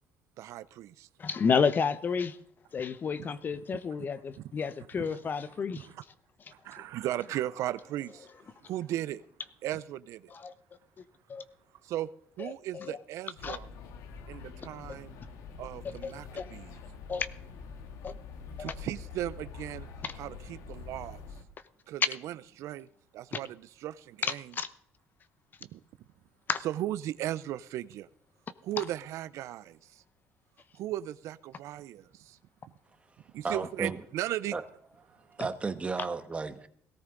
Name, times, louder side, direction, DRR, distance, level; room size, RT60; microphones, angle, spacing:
voice 1, 0.4-1.1 5.0-5.2 5.7-6.0 6.5-8.3 8.6-9.2 9.6-10.3 11.8-12.1 12.4-13.7 14.3-15.2 15.6-16.8 18.6-19.9 20.2-21.3 21.9-22.9 23.1-24.5 25.7-25.8 26.6-28.1 28.6-30.0 30.7-32.4 33.3-34.5, right 13 dB, 70° right, 0.5 m, -37 dB
voice 2, 1.2-2.4 2.7-5.9 6.7-6.8 10.3-10.5 11.0-11.4 12.4-13.0 13.4-13.6 16.0-16.4 17.1-17.3 18.0-18.1 18.6-18.7 20.0-20.1 22.0-22.1 24.2-24.7 26.5-26.6, left 6 dB, 35° left, 0.9 m, -31 dB
sound 1, 13.4-21.4, left 5 dB, 80° left, 1.6 m, -45 dB
voice 3, 33.4-34.0 34.5-34.6 35.3-36.7, right 4 dB, 25° right, 1.3 m, -33 dB
18.0 x 13.5 x 3.8 m
cardioid pair, 105°, 5 cm